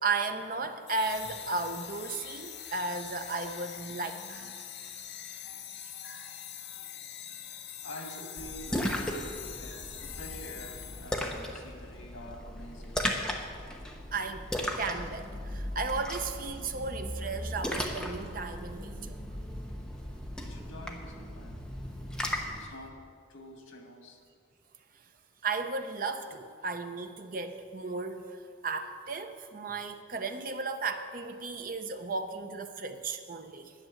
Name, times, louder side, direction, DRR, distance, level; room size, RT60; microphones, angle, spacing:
voice 1, 0.0-4.5 4.8-4.9 14.1-14.4 14.8-19.2 25.4-33.7, right 3 dB, 45° right, 7 dB, 0.7 m, -35 dB
sound 1, 0.9-11.4, left 9 dB, 55° left, 0.7 m, -43 dB
voice 2, 5.2-5.7 6.0-6.1 7.2-7.4 7.8-13.0 20.4-21.6 22.6-23.0 23.3-24.2, equal, 80° left, 2 dB, 1.9 m, -47 dB
Splash splatter, 8.4-22.7, equal, 5° left, 0.8 m, -37 dB
10.5 x 6.9 x 9.1 m, 2.2 s
head